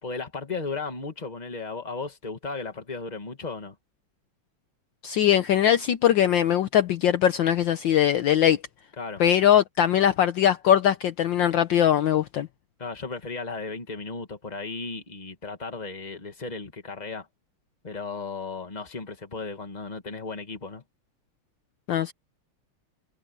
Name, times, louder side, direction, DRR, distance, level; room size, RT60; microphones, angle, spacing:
voice 1, 0.0-3.7 9.0-9.2 12.8-17.3 17.8-20.8, left 4 dB, 20° left, 1.9 m, -35 dB
voice 2, 5.0-8.6 9.2-12.5 21.9-22.1, left 10 dB, 65° left, 1.4 m, -21 dB
omnidirectional pair, 2.3 m